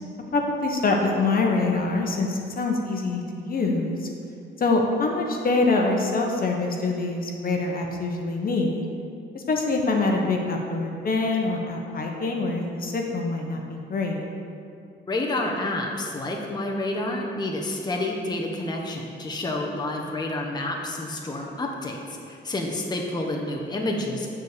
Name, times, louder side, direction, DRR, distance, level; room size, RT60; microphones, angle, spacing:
voice 1, 0.3-4.1 4.6-8.8 9.3-14.2, left 3 dB, 45° left, 1 dB, 1.1 m, -25 dB
voice 2, 15.1-24.3, left 2 dB, 20° left, 0 dB, 1.0 m, -29 dB
9.2 x 4.3 x 6.7 m, 2.4 s
cardioid pair, 90°, 20 cm